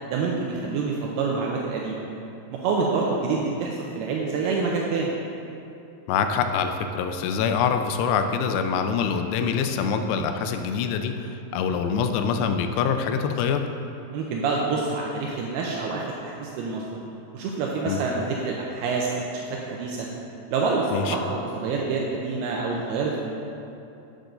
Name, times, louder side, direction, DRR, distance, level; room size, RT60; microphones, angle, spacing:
voice 1, 0.1-2.1 2.5-5.1 14.1-17.0 17.3-20.1 20.5-23.5, right 4 dB, 80° right, -2 dB, 2.5 m, -27 dB
voice 2, 6.1-13.7 17.9-18.0 20.9-21.2, left 6 dB, 85° left, 7 dB, 2.7 m, -25 dB
9.0 x 7.7 x 3.9 m, 2.8 s
omnidirectional pair, 4.8 m